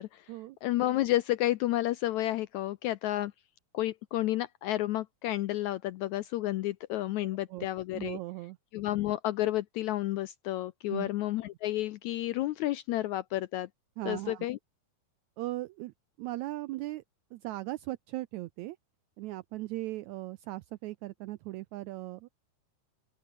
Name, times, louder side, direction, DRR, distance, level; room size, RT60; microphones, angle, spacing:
voice 1, 0.0-0.3 0.6-3.3 3.7-8.2 8.7-13.7 14.0-14.6, left 15 dB, 75° left, 1.7 m, -31 dB
voice 2, 7.2-7.7 7.9-8.6 10.9-11.1 14.0-14.5 15.4-17.0 17.3-18.8 19.2-22.3, right 17 dB, 90° right, 1.6 m, -38 dB
open air
omnidirectional pair, 3.9 m